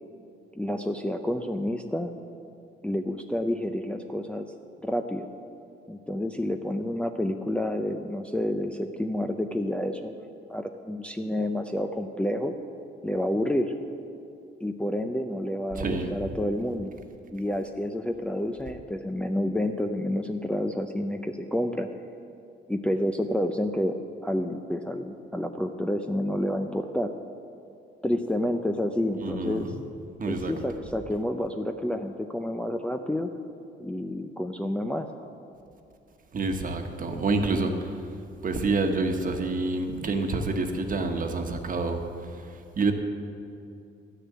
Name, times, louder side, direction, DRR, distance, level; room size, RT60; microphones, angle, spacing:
voice 1, 0.5-2.1 2.8-4.5 4.8-5.3 5.9-12.5 13.0-13.7 14.6-16.9 17.3-21.9 22.7-27.1 28.0-29.7 30.3-33.3 33.8-35.1, left 1 dB, 5° left, 4 dB, 0.6 m, -29 dB
voice 2, 15.7-16.3 29.2-29.7 30.2-30.5 36.3-37.9 38.4-42.0 42.3-42.9, right 3 dB, 45° right, 4 dB, 1.3 m, -28 dB
12.5 x 6.6 x 8.4 m, 2.6 s
cardioid pair, 90°, 20 cm